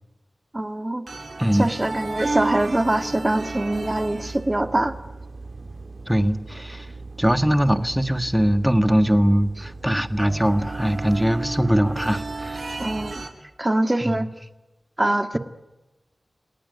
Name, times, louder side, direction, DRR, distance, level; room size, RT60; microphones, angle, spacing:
voice 1, 0.5-1.0 1.5-4.9 12.8-13.2 13.6-14.3 15.0-15.4, right 1 dB, 20° right, 8 dB, 1.9 m, -23 dB
sound 1, 1.1-13.3, right 3 dB, 60° right, 3.9 m, -34 dB
voice 2, 6.1-6.9 7.2-12.6 14.0-14.3, equal, 5° right, 10 dB, 1.6 m, -21 dB
28.5 x 18.5 x 9.5 m, 1.0 s
wide cardioid pair, 80°, 0 cm